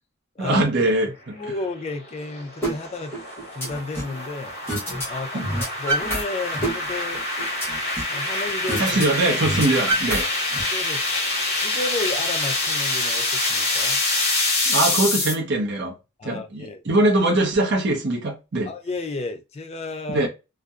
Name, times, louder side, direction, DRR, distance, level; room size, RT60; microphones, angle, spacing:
voice 1, 0.4-1.3 5.3-5.5 8.8-10.3 14.7-15.9 16.2-18.7 20.1-20.3, right 2 dB, 55° right, 0.6 m, -22 dB
voice 2, 1.3-3.1 3.5-4.6 5.1-7.2 8.1-8.9 10.7-11.0 11.6-14.0 16.2-16.8 18.6-20.3, left 2 dB, 30° left, 0.3 m, -32 dB
sound 1, 1.4-15.3, left 2 dB, 50° left, 0.9 m, -26 dB
sound 2, 2.6-2.7 3.1-4.2 4.7-5.1 5.3-6.2 6.5-8.2 8.7-9.0 9.3-10.6, right 1 dB, 10° left, 0.8 m, -27 dB
2.6 x 2.0 x 2.3 m
head